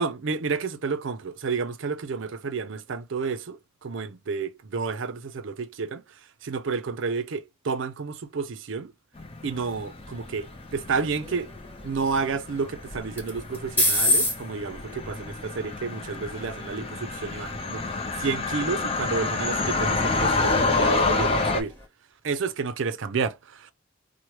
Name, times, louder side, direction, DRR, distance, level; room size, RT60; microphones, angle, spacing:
voice 1, 0.0-6.0 6.4-8.9 9.4-11.5 11.8-17.9 18.2-21.7 22.2-23.7, right 5 dB, 70° right, 0.5 m, -30 dB
sound 1, 9.2-21.6, left 3 dB, 30° left, 0.5 m, -28 dB
sound 2, 10.0-21.9, left 1 dB, 10° left, 1.4 m, -33 dB
3.0 x 2.1 x 2.9 m
head